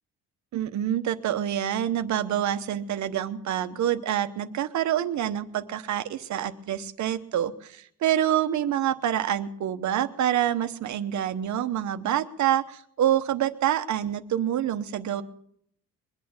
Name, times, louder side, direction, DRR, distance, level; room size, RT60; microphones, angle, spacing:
voice 1, 0.5-15.2, right 11 dB, 60° right, 10 dB, 1.0 m, -27 dB
22.5 x 8.8 x 7.1 m, 0.68 s
cardioid pair, 150°, 32 cm